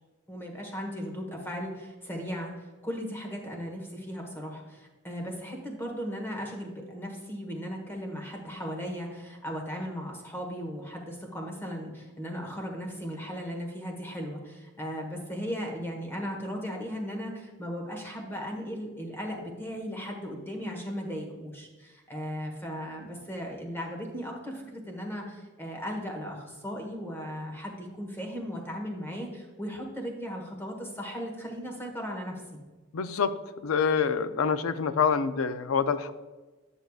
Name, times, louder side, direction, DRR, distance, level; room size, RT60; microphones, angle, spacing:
voice 1, 0.3-32.6, equal, 10° left, 1 dB, 1.4 m, -37 dB
voice 2, 32.9-33.3 33.6-36.1, left 6 dB, 85° left, 12 dB, 0.5 m, -26 dB
10.0 x 6.4 x 2.4 m, 1.2 s
head